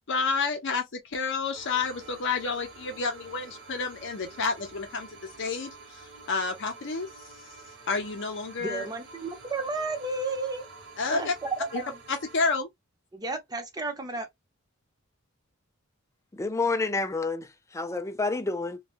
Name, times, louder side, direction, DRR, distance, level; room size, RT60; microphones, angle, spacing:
voice 1, 0.1-5.1 5.4-7.1 7.9-8.9 11.0-11.3 11.7-11.8 12.1-12.7, left 4 dB, 60° left, 0.7 m, -30 dB
sound 1, 1.5-12.6, right 3 dB, 60° right, 0.9 m, -48 dB
voice 2, 8.6-10.7 11.1-12.0 13.1-14.3, right 3 dB, 20° right, 0.8 m, -32 dB
voice 3, 16.3-18.8, left 3 dB, 15° left, 0.4 m, -29 dB
3.1 x 2.3 x 2.5 m
head